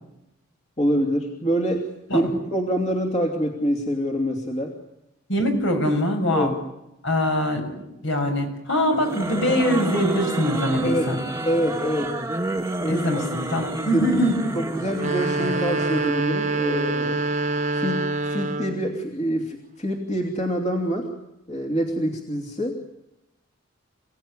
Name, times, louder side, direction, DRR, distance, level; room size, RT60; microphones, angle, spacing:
voice 1, 0.8-4.7 6.3-6.5 10.8-11.2 11.4-12.2 12.8-13.2 13.9-14.1 14.5-17.2 17.7-21.1 21.5-22.9, equal, 30° left, 1 dB, 2.9 m, -26 dB
voice 2, 5.3-6.5 7.0-7.6 8.0-11.2 12.8-14.4, equal, 65° left, 4 dB, 6.4 m, -23 dB
sound 1, 8.9-16.2, right 1 dB, 15° right, 1.7 m, -30 dB
sound 2, 14.9-18.9, right 2 dB, 35° right, 1.2 m, -25 dB
29.0 x 17.5 x 10.0 m, 0.90 s
head